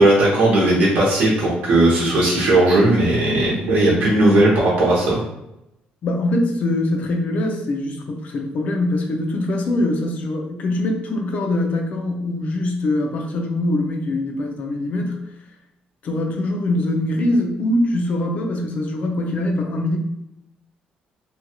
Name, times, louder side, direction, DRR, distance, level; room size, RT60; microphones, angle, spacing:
voice 1, 0.0-5.2, right 1 dB, 70° right, -7 dB, 0.9 m, -16 dB
voice 2, 6.0-15.2 16.0-20.0, left 1 dB, 50° left, 2 dB, 0.5 m, -23 dB
2.7 x 2.3 x 2.8 m, 0.86 s
cardioid pair, 140°, 3 cm